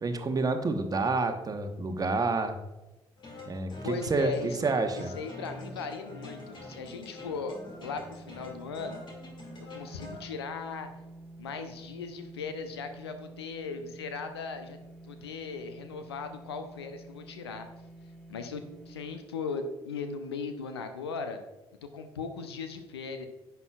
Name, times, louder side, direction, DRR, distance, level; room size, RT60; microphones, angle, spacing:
voice 1, 0.0-2.6 3.5-4.3 4.6-5.1, right 3 dB, 30° right, 7 dB, 1.1 m, -28 dB
sound 1, 3.2-10.2, left 2 dB, 35° left, 2.4 m, -45 dB
voice 2, 3.8-4.6 5.0-9.0 9.6-10.9 11.4-14.8 15.0-17.7 18.3-21.4 21.8-23.3, left 5 dB, 75° left, 8 dB, 0.7 m, -38 dB
sound 2, 4.0-19.3, right 2 dB, ahead, 0.9 m, -50 dB
10.5 x 8.1 x 2.4 m, 1.0 s
figure-of-eight pair, 45°, 13 cm